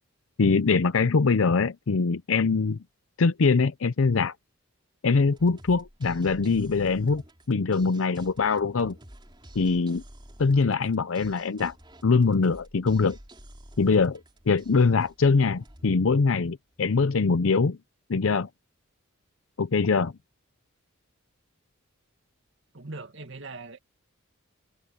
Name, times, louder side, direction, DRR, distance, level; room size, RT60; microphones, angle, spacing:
voice 1, 0.4-2.8 3.2-4.3 5.0-7.2 7.5-9.0 9.5-10.0 10.4-11.7 12.0-13.2 13.8-14.2 14.5-17.8 18.1-18.5 19.6-20.1, left 4 dB, 70° left, 0.6 m, -23 dB
sound 1, 5.2-16.8, right 1 dB, 20° right, 4.1 m, -50 dB
voice 2, 22.7-23.8, right 3 dB, 60° right, 2.2 m, -40 dB
head